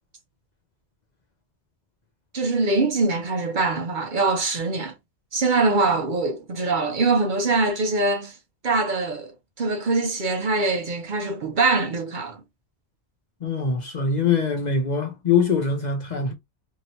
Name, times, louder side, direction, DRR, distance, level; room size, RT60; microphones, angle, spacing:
voice 1, 2.3-4.9 5.3-8.4 8.6-12.4, right 3 dB, 55° right, 0.7 m, -23 dB
voice 2, 13.4-16.3, left 5 dB, 50° left, 0.6 m, -23 dB
3.1 x 2.7 x 2.7 m
omnidirectional pair, 1.1 m